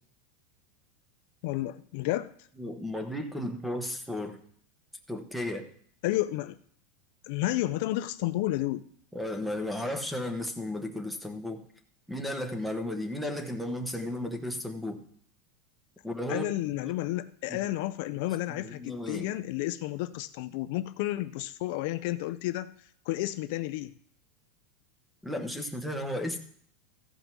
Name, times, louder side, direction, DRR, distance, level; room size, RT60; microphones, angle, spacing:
voice 1, 1.4-2.3 6.0-6.6 7.3-8.8 16.3-22.7 23.1-23.9, left 16 dB, 55° left, 11 dB, 0.4 m, -31 dB
voice 2, 2.6-4.4 5.1-5.7 9.1-11.6 12.1-15.0 16.0-16.5 16.8-16.9 17.5-17.6 18.5-19.3 25.2-26.4, left 1 dB, ahead, 6 dB, 1.0 m, -34 dB
15.0 x 5.3 x 6.0 m, 0.62 s
supercardioid pair, 165°, 0 cm